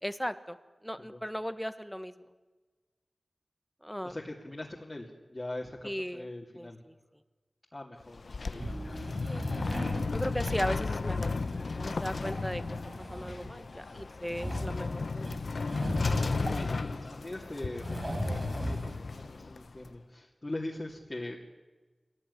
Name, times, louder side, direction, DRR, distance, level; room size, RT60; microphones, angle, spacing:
voice 1, 0.0-0.6 0.8-2.1 3.8-4.2 5.8-6.3 6.6-6.9 9.2-9.4 10.1-12.6 13.0-15.6, equal, 5° left, 11 dB, 1.4 m, -37 dB
voice 2, 4.0-6.8 7.7-8.6 16.3-21.4, left 1 dB, 35° left, -1 dB, 2.6 m, -41 dB
sound 1, 8.0-19.9, left 3 dB, 75° left, 0.9 m, -34 dB
sound 2, 8.4-10.1 10.4-10.6 11.3-17.1 17.7-19.0, right 1 dB, 25° right, 5.4 m, -39 dB
25.0 x 18.0 x 9.7 m, 1.3 s
wide cardioid pair, 80°, 0 cm